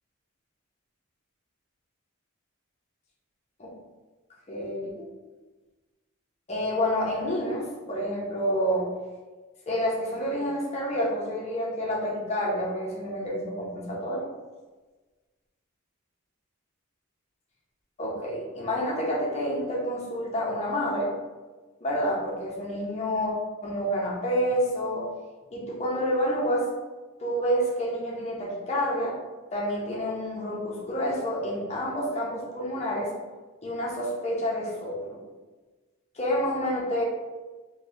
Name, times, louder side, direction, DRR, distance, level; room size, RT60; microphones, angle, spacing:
voice 1, 4.5-5.1 6.5-8.9 9.7-14.2 18.0-21.1 21.8-23.3 23.6-25.1 25.5-26.7 27.2-29.2 29.5-33.1 33.6-35.2 36.1-37.0, equal, 30° left, -4 dB, 0.7 m, -28 dB
2.7 x 2.2 x 3.2 m, 1.3 s
head